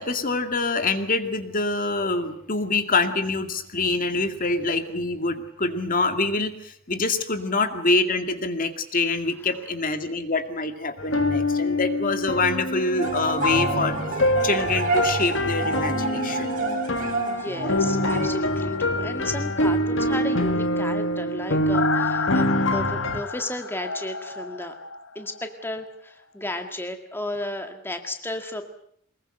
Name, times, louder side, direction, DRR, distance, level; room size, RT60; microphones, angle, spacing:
voice 1, 0.0-14.0 14.4-16.6, left 3 dB, 45° left, 7 dB, 2.2 m, -25 dB
sound 1, 11.0-23.2, left 1 dB, 70° left, 2.0 m, -25 dB
sound 2, 13.0-18.3, right 3 dB, 45° right, 7.8 m, -28 dB
voice 2, 17.3-24.8 25.2-28.6, left 1 dB, 10° left, 5 dB, 1.9 m, -33 dB
sound 3, 17.6-25.5 25.8-25.9, left 5 dB, 90° left, 1.2 m, -32 dB
24.0 x 21.5 x 7.9 m, 0.66 s
head